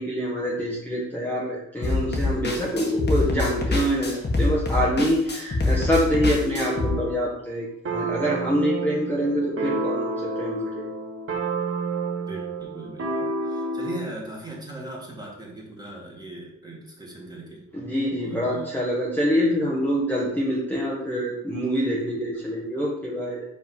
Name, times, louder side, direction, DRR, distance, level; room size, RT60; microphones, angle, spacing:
voice 1, 0.0-10.9 17.7-23.4, equal, 5° left, -5 dB, 1.3 m, -25 dB
sound 1, 1.8-6.9, left 2 dB, 35° left, 1.6 m, -25 dB
sound 2, 6.6-7.2 7.9-14.1, right 3 dB, 45° right, 1.3 m, -30 dB
voice 2, 12.3-17.7 18.2-18.7, right 2 dB, 15° right, -3 dB, 2.1 m, -39 dB
5.3 x 3.9 x 5.5 m, 0.82 s
cardioid pair, 90°, 30 cm